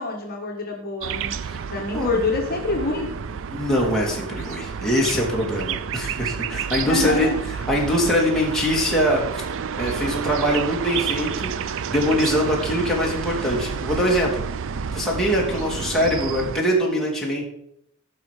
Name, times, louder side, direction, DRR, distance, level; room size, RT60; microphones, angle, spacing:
voice 1, 0.0-1.4 1.7-3.1 6.8-7.4, left 3 dB, 45° left, 0 dB, 1.7 m, -26 dB
sound 1, 1.0-16.6, right 7 dB, 60° right, 0.4 m, -30 dB
voice 2, 3.5-7.3 7.7-9.4 9.8-14.4 14.9-17.5, equal, ahead, -4 dB, 2.7 m, -23 dB
14.5 x 5.7 x 5.1 m, 0.76 s
head